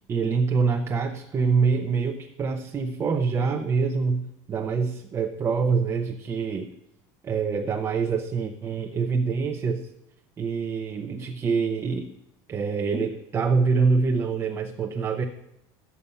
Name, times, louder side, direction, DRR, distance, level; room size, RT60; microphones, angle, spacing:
voice 1, 0.1-6.7 7.2-9.9 10.4-12.1 12.5-15.2, right 5 dB, 25° right, 5 dB, 0.7 m, -25 dB
9.3 x 7.0 x 5.5 m, 0.85 s
supercardioid pair, 130°, 10 cm